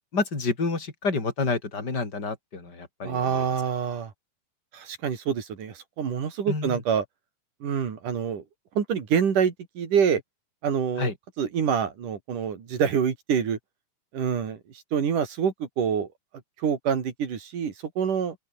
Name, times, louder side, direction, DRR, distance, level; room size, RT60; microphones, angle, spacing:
voice 1, 0.0-3.5 6.5-6.8 11.0-11.1, left 3 dB, 30° left, 5.4 m, -29 dB
voice 2, 3.0-4.1 4.7-7.0 7.6-8.4 8.8-10.2 10.6-13.6 14.1-14.6 14.9-16.1 16.6-18.4, right 7 dB, 75° right, 4.6 m, -26 dB
open air
omnidirectional pair, 3.7 m